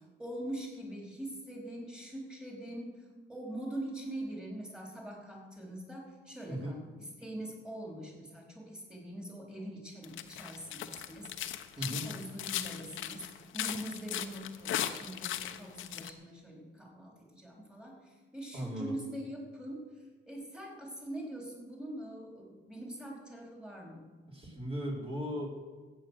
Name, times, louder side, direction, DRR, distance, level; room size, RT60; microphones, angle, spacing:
voice 1, 0.0-24.1, right 1 dB, 5° right, -1 dB, 4.3 m, -43 dB
sound 1, 10.0-16.1, left 11 dB, 80° left, 0.9 m, -37 dB
voice 2, 18.5-18.9 24.3-25.7, equal, 30° right, -2 dB, 4.5 m, -37 dB
15.0 x 8.8 x 6.6 m, 1.3 s
cardioid pair, 90°, 20 cm